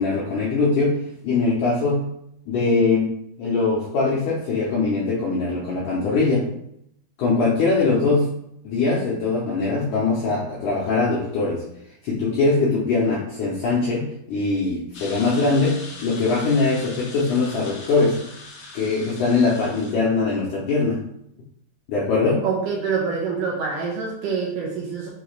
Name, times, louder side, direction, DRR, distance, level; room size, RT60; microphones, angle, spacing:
voice 1, 0.0-2.1 2.5-3.1 3.4-6.5 7.2-8.4 8.6-11.6 12.0-18.2 18.7-21.0 21.9-22.4, left 3 dB, 90° left, -6 dB, 1.8 m, -22 dB
sound 1, 14.9-19.9, left 3 dB, 65° left, 2.1 m, -40 dB
voice 2, 22.4-25.1, right 5 dB, 75° right, -3 dB, 2.1 m, -26 dB
6.1 x 2.4 x 3.2 m, 0.75 s
omnidirectional pair, 4.5 m